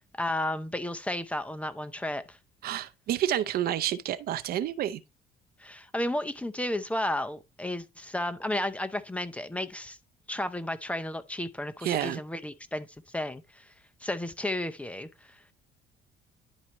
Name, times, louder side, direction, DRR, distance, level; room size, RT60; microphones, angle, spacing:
voice 1, 0.2-2.4 5.6-10.0 10.3-12.9 13.1-13.7 14.0-15.5, left 1 dB, 10° left, 0.6 m, -33 dB
voice 2, 2.6-5.0 11.8-12.2, right 11 dB, 65° right, 0.6 m, -29 dB
11.0 x 4.3 x 2.9 m
cardioid pair, 110°, 17 cm